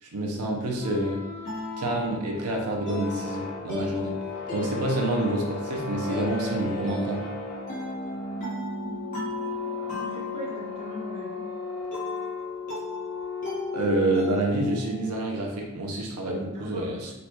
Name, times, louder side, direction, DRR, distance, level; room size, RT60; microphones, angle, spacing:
voice 1, 0.0-1.2 1.8-4.2 4.5-7.3 13.7-17.1, right 1 dB, 90° right, 0 dB, 0.6 m, -27 dB
sound 1, 0.6-15.4, left 2 dB, 35° left, 1.2 m, -38 dB
sound 2, 0.7-14.5, left 4 dB, 80° left, 0.6 m, -36 dB
voice 2, 10.0-11.5 16.5-16.9, equal, 30° right, -5 dB, 0.6 m, -39 dB
3.7 x 2.3 x 2.9 m, 0.98 s
head